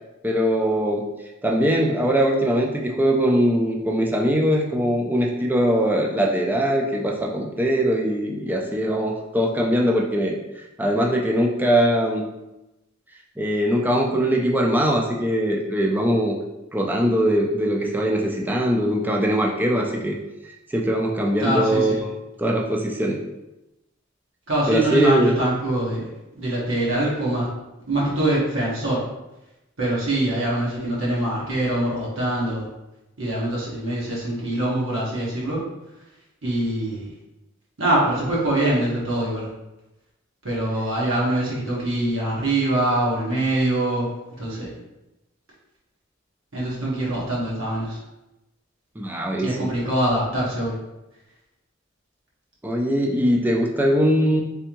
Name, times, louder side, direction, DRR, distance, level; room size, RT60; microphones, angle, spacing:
voice 1, 0.2-1.0 1.4-10.4 10.8-12.3 13.4-16.4 16.7-20.2 20.7-22.1 22.4-23.2 24.7-25.3 49.0-49.7 52.6-54.4, equal, 10° right, 0 dB, 0.4 m, -21 dB
voice 2, 21.4-22.0 24.5-26.1 26.4-27.5 27.9-29.0 29.8-32.7 33.2-35.6 36.4-37.1 37.8-39.5 40.4-44.1 44.4-44.7 46.5-48.0 49.4-50.7, right 1 dB, 75° right, -5 dB, 1.2 m, -23 dB
3.4 x 3.4 x 3.0 m, 0.97 s
head